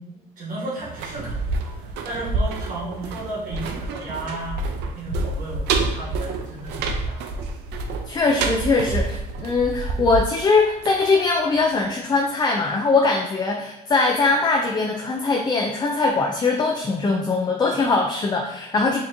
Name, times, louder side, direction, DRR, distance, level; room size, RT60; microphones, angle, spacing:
voice 1, 0.0-4.6 4.9-7.3, right 2 dB, 55° right, -6 dB, 1.3 m, -34 dB
sound 1, 0.8-11.6 11.9-12.0, right 3 dB, 85° right, 0.5 m, -28 dB
voice 2, 8.1-19.0, left 3 dB, 25° left, 1 dB, 0.4 m, -21 dB
4.1 x 2.9 x 2.6 m, 0.93 s
cardioid pair, 110°, 17 cm